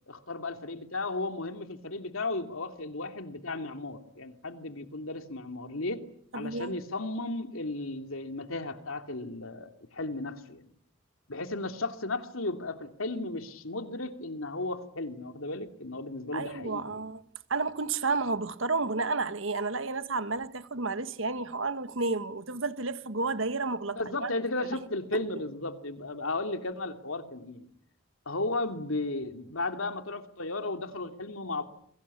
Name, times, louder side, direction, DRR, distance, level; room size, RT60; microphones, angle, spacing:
voice 1, 0.1-6.0 6.3-10.7 11.3-17.0 23.9-27.7 28.3-31.6, left 2 dB, 75° left, 2.8 m, -35 dB
voice 2, 6.3-6.7 16.3-17.2 17.5-24.3 24.6-24.7 25.1-25.2, right 3 dB, 65° right, 1.6 m, -31 dB
30.0 x 23.0 x 8.5 m
head